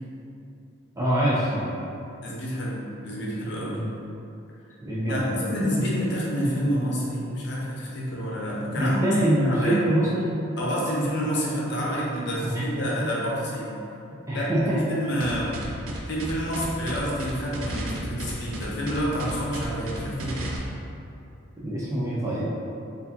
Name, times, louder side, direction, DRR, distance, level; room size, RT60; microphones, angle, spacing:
voice 1, 1.0-1.8 3.7-3.8 4.8-5.3 8.7-10.3 12.4-12.7 13.0-13.1 14.3-14.8 21.6-22.5, right 1 dB, 15° right, -7 dB, 0.5 m, -24 dB
voice 2, 2.2-3.8 5.1-9.1 9.4-9.8 10.6-13.7 14.3-15.5 16.1-20.4, equal, 55° left, -5 dB, 0.7 m, -28 dB
sound 1, 15.2-20.6, right 1 dB, 90° right, 0.5 m, -33 dB
4.4 x 2.6 x 2.7 m, 2.7 s
head